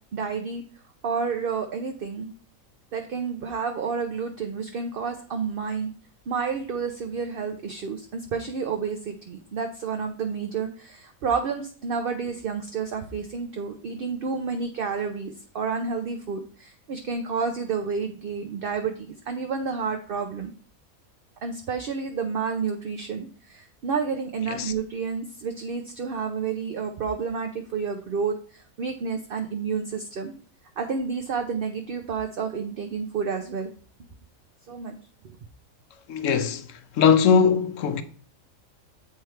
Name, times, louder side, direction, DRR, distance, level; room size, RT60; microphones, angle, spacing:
voice 1, 0.1-0.6 1.0-2.3 2.9-5.9 6.3-20.5 21.4-30.3 30.8-33.7 34.7-35.0, right 5 dB, 55° right, 0.7 m, -30 dB
voice 2, 36.1-38.0, left 6 dB, 70° left, 1.0 m, -21 dB
7.9 x 3.5 x 4.4 m
omnidirectional pair, 1.5 m